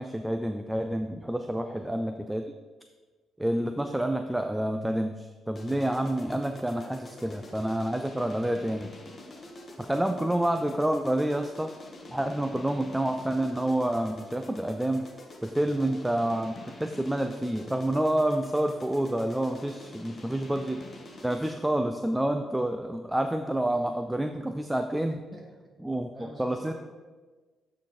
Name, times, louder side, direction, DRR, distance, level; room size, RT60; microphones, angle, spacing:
voice 1, 0.0-2.5 3.4-8.9 9.8-11.7 12.1-15.1 15.4-20.8 21.2-25.2 25.8-26.7, right 1 dB, 5° right, 6 dB, 0.4 m, -28 dB
voice 2, 1.7-2.1 3.4-3.6 7.1-7.2 7.4-7.5 15.7-15.9 20.2-20.5 25.3-25.7 26.1-26.7, right 2 dB, 25° right, -2 dB, 2.0 m, -48 dB
sound 1, 5.6-21.7, left 2 dB, 35° left, 1.1 m, -46 dB
8.8 x 3.9 x 4.2 m, 1.3 s
cardioid pair, 90°, 0 cm